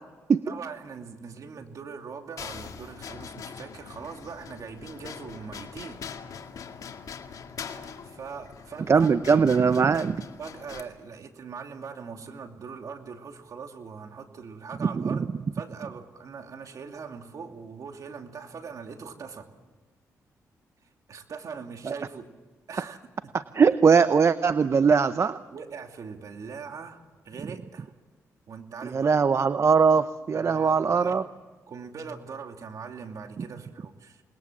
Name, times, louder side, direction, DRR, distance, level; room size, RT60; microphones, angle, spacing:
voice 1, 0.4-6.0 8.0-9.1 10.4-15.3 15.5-19.5 20.8-22.3 22.7-23.0 23.2-23.3 25.5-27.9 28.5-29.2 30.3-31.2 31.7-34.2, right 5 dB, 60° right, 5 dB, 2.7 m, -41 dB
sound 1, 2.4-10.8, left 6 dB, 65° left, 2.1 m, -42 dB
voice 2, 8.9-10.2 15.0-15.2 21.9-22.0 23.3-25.4 28.9-31.2, right 5 dB, 45° right, 13 dB, 0.7 m, -21 dB
28.0 x 20.5 x 7.4 m, 1.3 s
cardioid pair, 65°, 6 cm